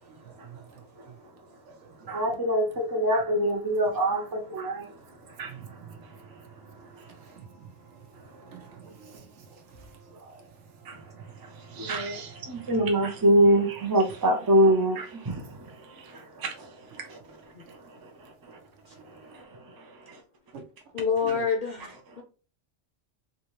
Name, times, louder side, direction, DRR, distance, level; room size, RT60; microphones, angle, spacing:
voice 1, 2.1-5.0 5.3-5.5 7.0-7.1 10.9-11.0 11.4-17.2 17.7-18.6 19.1-20.2, right 1 dB, 35° right, 0.3 m, -26 dB
voice 2, 5.5-6.0 6.3-6.4 6.8-7.0 8.4-9.3 10.1-10.4 11.8-11.9 12.4-12.5 20.5-20.6, right 6 dB, 70° right, 1.0 m, -47 dB
voice 3, 20.9-22.2, left 6 dB, 55° left, 0.5 m, -27 dB
3.5 x 2.7 x 3.0 m
omnidirectional pair, 1.3 m